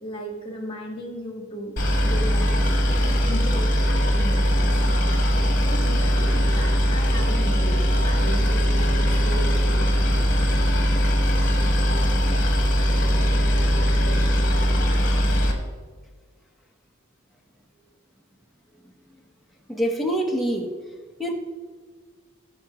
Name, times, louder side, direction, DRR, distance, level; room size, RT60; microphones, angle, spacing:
voice 1, 0.0-2.6 3.0-4.8 5.6-9.7, equal, 25° left, 1 dB, 1.6 m, -35 dB
Boat Water vehicle, 1.8-15.5, equal, 40° left, 1.4 m, -20 dB
voice 2, 19.7-20.7 21.2-21.3, right 1 dB, ahead, 1 dB, 1.0 m, -25 dB
15.5 x 5.9 x 3.0 m, 1.5 s
head